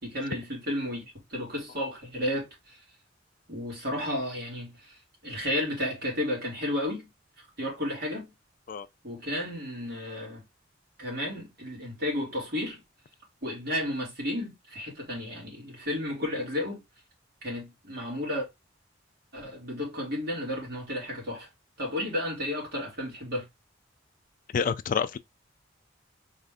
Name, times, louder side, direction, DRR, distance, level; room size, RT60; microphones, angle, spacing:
voice 1, 0.0-1.0 1.3-2.8 3.5-5.0 5.2-7.1 7.4-8.3 9.0-10.4 11.0-12.8 13.4-16.8 17.4-18.5 19.3-21.5 21.8-23.5, left 1 dB, 55° right, 2.5 m, -32 dB
voice 2, 24.5-25.2, left 6 dB, 45° left, 0.3 m, -27 dB
4.1 x 2.6 x 3.5 m
head